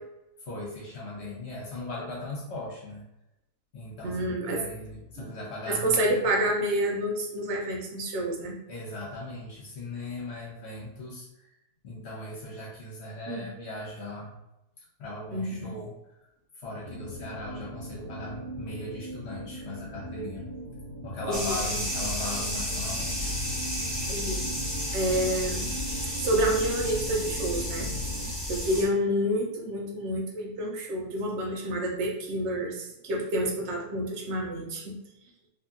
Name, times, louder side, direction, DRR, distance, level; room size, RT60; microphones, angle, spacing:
voice 1, 0.5-3.0 3.7-4.2 4.5-6.1 8.7-11.3 11.8-14.3 15.0-16.0 16.6-20.5 21.0-23.3, left 2 dB, 55° left, -4 dB, 0.8 m, -38 dB
voice 2, 4.0-4.6 5.2-5.3 5.7-8.6 13.3-13.5 15.3-15.7 21.3-21.6 24.1-24.5 24.9-25.7 26.2-27.9 28.5-34.9, right 1 dB, 65° right, 0 dB, 0.7 m, -28 dB
sound 1, 16.8-28.3, right 1 dB, 80° right, 1.3 m, -40 dB
sound 2, 21.3-28.8, left 1 dB, ahead, 0.4 m, -32 dB
2.8 x 2.5 x 2.4 m, 0.89 s
omnidirectional pair, 1.8 m